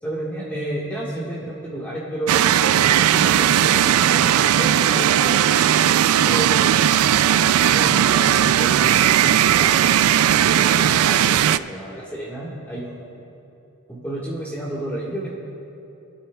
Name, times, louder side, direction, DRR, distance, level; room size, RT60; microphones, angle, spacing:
voice 1, 0.0-2.4 3.0-5.5 6.2-6.9 7.7-9.9 10.6-13.1 13.9-15.3, right 1 dB, 10° left, -7 dB, 1.5 m, -31 dB
sound 1, 2.3-11.6, right 10 dB, 75° right, 0.3 m, -17 dB
23.5 x 12.5 x 2.3 m, 2.9 s
head